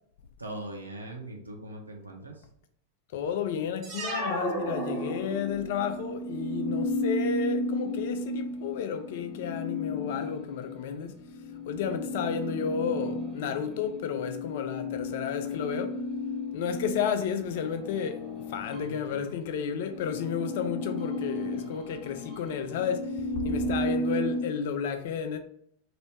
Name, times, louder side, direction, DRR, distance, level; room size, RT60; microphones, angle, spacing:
voice 1, 0.4-2.4 18.8-19.4, right 1 dB, 80° right, 0.7 m, -41 dB
voice 2, 3.1-11.1 11.7-16.0 16.5-25.4, left 7 dB, 55° left, 0.4 m, -32 dB
sound 1, 3.8-5.7, right 1 dB, 40° right, 0.9 m, -33 dB
sound 2, 4.7-19.3 19.6-24.4, left 1 dB, 20° left, 1.0 m, -34 dB
3.0 x 2.7 x 3.1 m
figure-of-eight pair, 90°, 0 cm